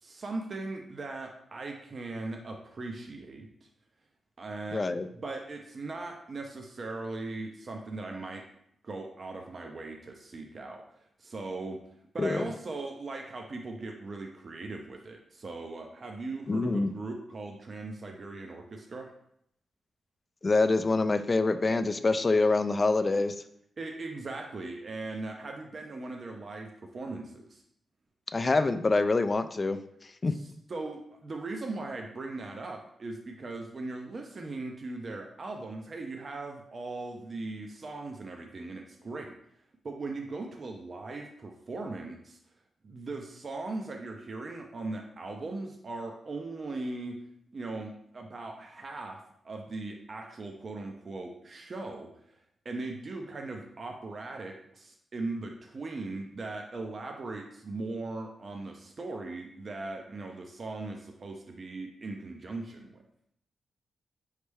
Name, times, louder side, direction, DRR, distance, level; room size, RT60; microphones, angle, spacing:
voice 1, 0.0-3.5 4.4-4.8 5.1-8.4 8.8-10.8 11.2-11.8 12.1-19.1 23.8-27.6 30.3-39.3 39.8-42.4 42.8-47.2 47.5-52.4 52.6-63.0, right 3 dB, 50° right, 2 dB, 0.5 m, -39 dB
voice 2, 4.7-5.1 12.2-12.5 16.5-16.9 20.4-23.3 28.3-29.8 30.2-30.3, left 3 dB, 35° left, 10 dB, 0.3 m, -25 dB
4.2 x 3.2 x 3.3 m, 0.73 s
cardioid pair, 60°, 0 cm